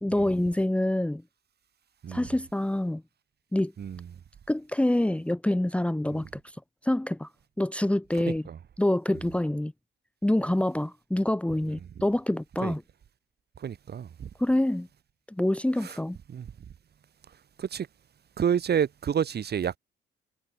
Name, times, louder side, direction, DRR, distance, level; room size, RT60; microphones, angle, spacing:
voice 1, 0.0-1.2 2.1-3.0 3.5-3.7 4.5-6.6 6.8-7.3 7.6-8.5 8.8-9.7 10.2-12.8 14.4-14.9 15.3-16.2, left 1 dB, 5° left, 1.3 m, -26 dB
voice 2, 13.6-14.3 15.8-16.0 16.3-16.5 17.6-17.9 18.4-19.8, right 8 dB, 55° right, 3.8 m, -29 dB
cardioid pair, 90°, 20 cm